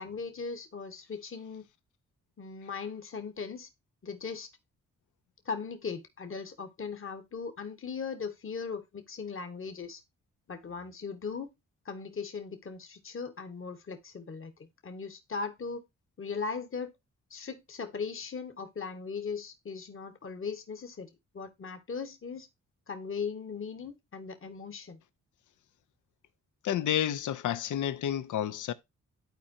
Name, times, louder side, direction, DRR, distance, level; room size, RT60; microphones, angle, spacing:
voice 1, 0.0-1.6 2.4-3.7 4.0-4.5 5.4-10.0 10.5-11.5 11.8-15.8 16.2-16.9 17.3-22.5 22.9-25.0, left 5 dB, 40° left, 1.4 m, -38 dB
voice 2, 26.6-28.7, left 10 dB, 75° left, 0.7 m, -30 dB
12.0 x 4.5 x 2.6 m
cardioid pair, 65°, 31 cm